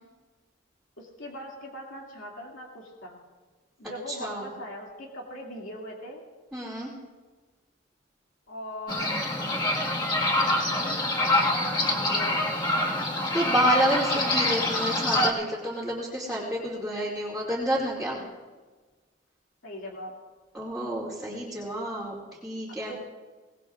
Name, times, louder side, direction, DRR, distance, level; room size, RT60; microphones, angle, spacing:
voice 1, 1.0-3.2 3.8-6.2 8.5-9.3 10.7-12.7 19.6-20.1 22.9-23.0, equal, 75° left, -2 dB, 2.5 m, -40 dB
voice 2, 4.1-4.5 6.5-6.9 13.3-18.2 20.5-22.2 22.4-22.9, equal, 5° right, -8 dB, 2.5 m, -29 dB
sound 1, 8.9-15.3, left 1 dB, 20° left, 1.7 m, -25 dB
23.5 x 18.5 x 2.5 m, 1.4 s
head